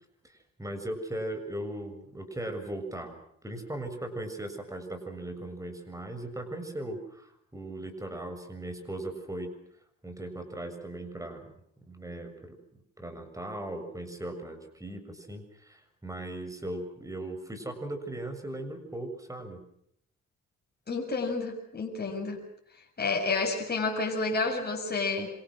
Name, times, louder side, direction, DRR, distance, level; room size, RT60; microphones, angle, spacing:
voice 1, 0.2-9.5 10.0-11.5 11.9-12.6 13.0-19.6, right 1 dB, 10° right, 7 dB, 7.1 m, -38 dB
voice 2, 20.9-22.4 23.0-25.3, left 3 dB, 35° left, 1 dB, 6.6 m, -30 dB
27.0 x 27.0 x 6.4 m, 0.71 s
cardioid pair, 90°, 30 cm